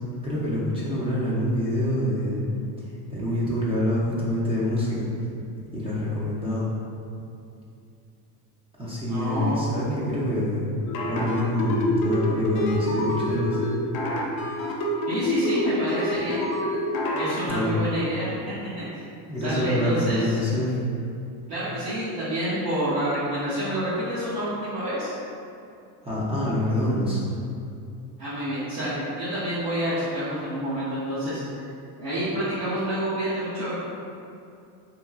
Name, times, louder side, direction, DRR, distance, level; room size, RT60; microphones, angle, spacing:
voice 1, 0.2-2.4 3.1-5.1 5.7-6.7 8.8-10.7 11.0-13.6 17.5-17.8 19.2-20.8 26.0-27.2, left 1 dB, 15° right, -8 dB, 0.4 m, -26 dB
voice 2, 9.1-9.6 15.1-16.4 17.1-18.3 18.7-19.0 19.4-20.4 21.5-25.1 28.2-31.4 32.0-33.7, right 1 dB, 65° right, -13 dB, 0.9 m, -28 dB
sound 1, 10.9-17.4, left 1 dB, 55° left, 0.5 m, -27 dB
2.9 x 2.3 x 2.4 m, 2.5 s
cardioid pair, 115°, 43 cm